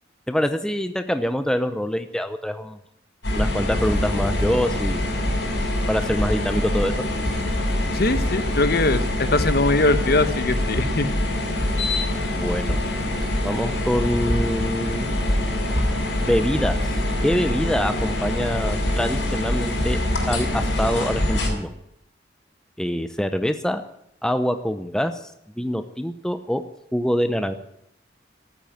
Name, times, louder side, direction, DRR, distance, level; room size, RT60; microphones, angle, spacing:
voice 1, 0.3-2.8 3.3-5.0 5.9-6.9 12.3-12.8 13.4-15.1 16.2-16.8 17.2-20.0 20.3-21.7 22.8-23.8 24.2-25.3 25.6-26.6 26.9-27.5, equal, 5° left, 9 dB, 0.7 m, -25 dB
sound 1, 3.2-21.5, left 1 dB, 70° left, 6.3 m, -24 dB
voice 2, 7.9-11.1, left 2 dB, 55° left, 11 dB, 1.2 m, -21 dB
13.5 x 9.4 x 9.2 m, 0.78 s
head